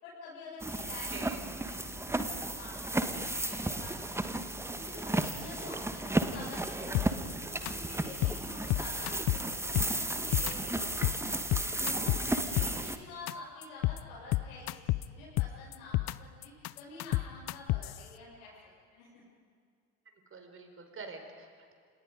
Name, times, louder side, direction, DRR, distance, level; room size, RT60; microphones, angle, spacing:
voice 1, 0.0-4.4 4.7-11.1 11.9-18.5 18.9-19.3, left 3 dB, 65° left, -7 dB, 7.3 m, -48 dB
sound 1, 0.6-13.0, right 2 dB, 5° right, 1.5 m, -34 dB
sound 2, 6.9-7.3 7.7-7.8 8.0-8.4 8.7-9.4 9.8-10.5 10.8-11.2 11.5-12.9 13.3-13.4 13.6-14.0 14.3-15.0 15.4-16.1 16.4-18.0, left 19 dB, 35° left, 0.7 m, -30 dB
voice 2, 12.3-13.0 20.3-21.7, right 4 dB, 30° right, 5 dB, 4.9 m, -47 dB
30.0 x 28.0 x 5.3 m, 2.2 s
figure-of-eight pair, 70°, 45 cm